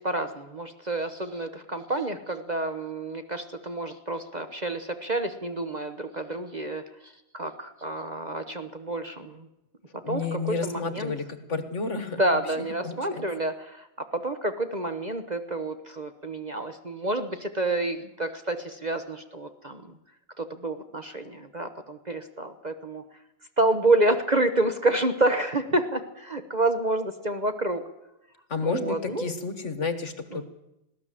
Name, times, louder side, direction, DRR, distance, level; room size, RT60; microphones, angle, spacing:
voice 1, 0.0-6.8 7.3-9.5 10.1-10.2 10.6-11.1 12.2-19.8 20.4-23.0 23.6-27.8 28.6-29.3, right 2 dB, 35° right, 9 dB, 0.6 m, -28 dB
voice 2, 10.0-13.2 28.5-30.4, left 4 dB, 35° left, 11 dB, 1.6 m, -31 dB
20.5 x 16.5 x 7.6 m, 0.89 s
omnidirectional pair, 2.4 m